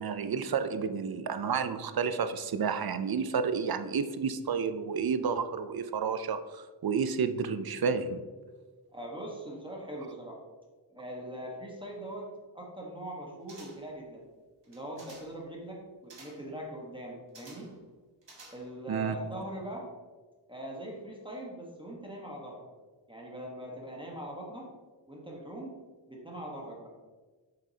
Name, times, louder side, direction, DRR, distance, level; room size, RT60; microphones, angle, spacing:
voice 1, 0.0-8.2 18.9-19.1, right 6 dB, 55° right, 10 dB, 0.5 m, -31 dB
voice 2, 8.9-10.4 10.9-14.3 14.7-17.7 18.5-19.9 20.5-22.7 23.1-24.7 25.1-25.8 26.1-26.9, right 1 dB, 10° right, -3 dB, 1.2 m, -41 dB
sound 1, 13.5-14.0 14.6-15.4 16.1-16.5 17.3-17.8 18.2-18.9 19.2-19.3, right 3 dB, 70° right, 1.7 m, -53 dB
7.3 x 6.2 x 2.8 m, 1.4 s
wide cardioid pair, 105°, 44 cm